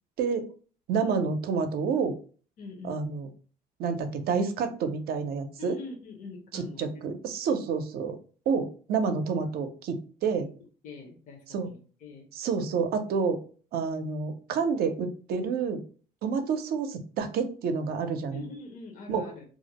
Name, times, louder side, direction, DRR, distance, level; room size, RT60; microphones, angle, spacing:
voice 1, 0.2-0.5 0.9-2.1 2.8-3.3 3.8-5.8 6.5-8.2 8.5-10.5 11.5-11.7 12.3-13.4 13.7-15.8 16.2-18.4 19.1-19.3, right 5 dB, 65° right, 8 dB, 0.5 m, -29 dB
voice 2, 2.6-3.1 5.6-7.0 7.7-7.8 10.3-10.5 10.8-12.3 18.3-19.4, left 3 dB, 50° left, 2 dB, 0.6 m, -44 dB
2.4 x 2.0 x 2.8 m, 0.40 s
cardioid pair, 110°, 17 cm